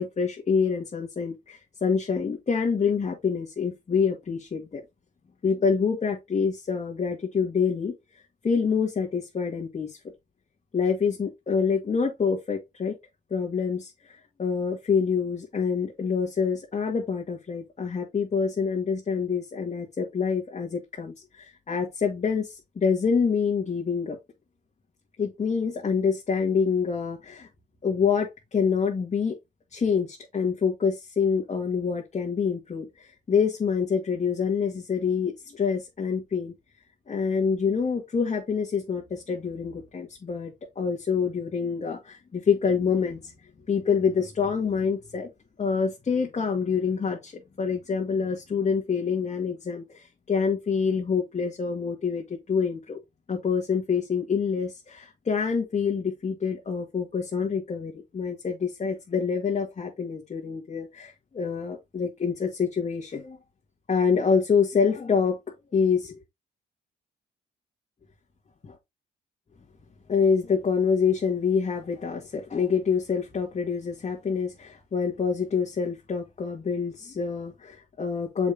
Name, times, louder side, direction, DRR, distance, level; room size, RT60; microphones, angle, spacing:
voice 1, 0.0-4.8 5.4-7.9 8.4-10.0 10.7-13.0 13.3-24.2 25.2-27.5 27.8-29.3 29.7-36.5 37.1-43.3 43.7-45.3 45.6-53.0 53.3-63.4 63.9-65.4 65.7-66.2 68.6-68.7 70.1-78.5, left 6 dB, 35° left, 1.8 m, -26 dB
7.0 x 5.0 x 2.8 m
cardioid pair, 90°, 20 cm